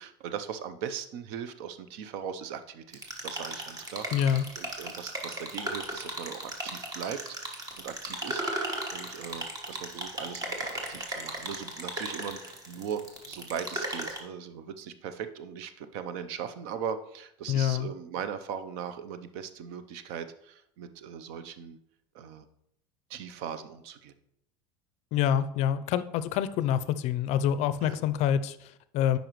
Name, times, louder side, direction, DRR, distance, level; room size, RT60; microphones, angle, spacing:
voice 1, 0.0-7.2 7.4-21.8 22.1-22.4 23.1-24.1 27.8-28.0, right 7 dB, 70° right, 11 dB, 0.6 m, -39 dB
sound 1, 2.9-14.2, right 1 dB, 25° right, 1.4 m, -36 dB
voice 2, 4.1-4.5 17.5-17.9 25.1-29.2, left 9 dB, 55° left, 14 dB, 0.4 m, -26 dB
8.8 x 5.3 x 3.0 m, 0.75 s
supercardioid pair, 120°, 14 cm